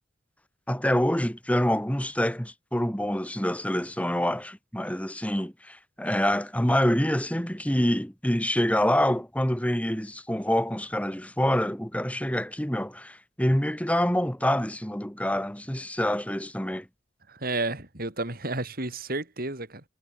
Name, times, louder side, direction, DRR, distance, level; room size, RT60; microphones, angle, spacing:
voice 1, 0.7-16.9, equal, 10° left, 3.0 m, -26 dB
voice 2, 17.3-19.8, right 2 dB, 55° right, 4.7 m, -31 dB
head